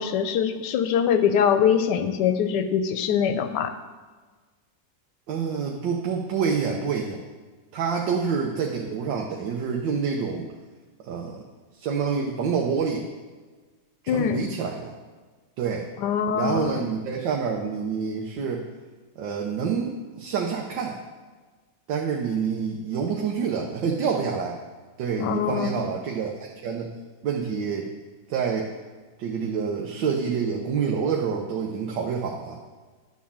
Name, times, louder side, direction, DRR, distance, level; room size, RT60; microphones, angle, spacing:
voice 1, 0.0-3.8 14.1-14.4 16.0-16.8 25.2-25.8, left 7 dB, 75° left, 9 dB, 1.2 m, -23 dB
voice 2, 5.3-7.2 7.7-10.5 11.0-11.4 11.7-13.1 14.0-14.9 15.6-15.9 16.3-18.7 19.2-21.0 21.9-24.6 25.0-26.9 27.2-27.9 28.3-28.7 29.2-32.6, right 6 dB, 90° right, 0 dB, 1.5 m, -27 dB
10.5 x 4.4 x 7.1 m, 1.4 s
omnidirectional pair, 1.9 m